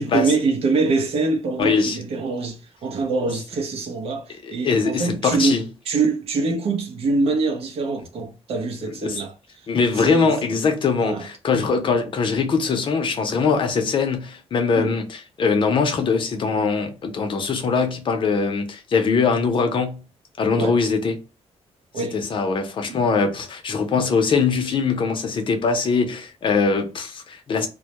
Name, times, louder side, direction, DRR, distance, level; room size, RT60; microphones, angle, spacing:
voice 1, 0.0-5.6 5.9-9.3 10.0-10.3 11.0-11.2 14.8-14.9 20.6-20.8 21.9-22.2 22.9-23.0, right 3 dB, 65° right, 0.5 m, -24 dB
voice 2, 1.6-2.0 4.4-5.6 8.9-9.2 9.7-20.0 20.4-21.2 22.0-27.7, left 5 dB, 50° left, 0.6 m, -22 dB
2.2 x 2.0 x 2.8 m
cardioid pair, 115°, 11 cm